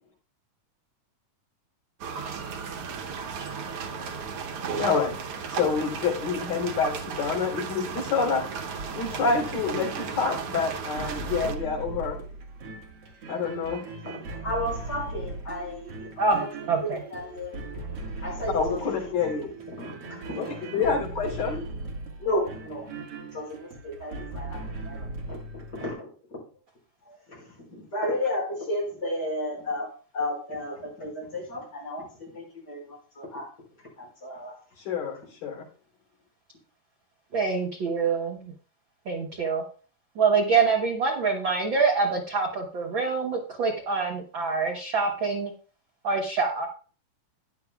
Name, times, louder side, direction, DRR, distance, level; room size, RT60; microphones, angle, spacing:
sound 1, 2.0-11.5, right 6 dB, 90° right, 1.2 m, -35 dB
voice 1, 4.8-5.1 5.5-8.5 8.9-12.2 13.3-13.8 18.5-19.5 20.4-20.5 20.7-21.6 34.8-35.7, left 5 dB, 85° left, -3 dB, 4.9 m, -27 dB
sound 2, 8.8-25.9, right 2 dB, 50° right, 2.5 m, -39 dB
voice 2, 14.4-16.5 16.8-17.7 18.2-19.5 19.8-20.5 22.2-22.9 23.3-25.4 25.7-26.1 27.0-33.5 34.0-34.6, left 1 dB, 30° left, -3 dB, 5.8 m, -33 dB
voice 3, 16.7-17.0 37.3-38.5 39.1-39.6 40.2-45.5 46.0-46.7, right 4 dB, 70° right, 1 dB, 1.1 m, -25 dB
14.0 x 10.5 x 2.3 m, 0.39 s
omnidirectional pair, 3.9 m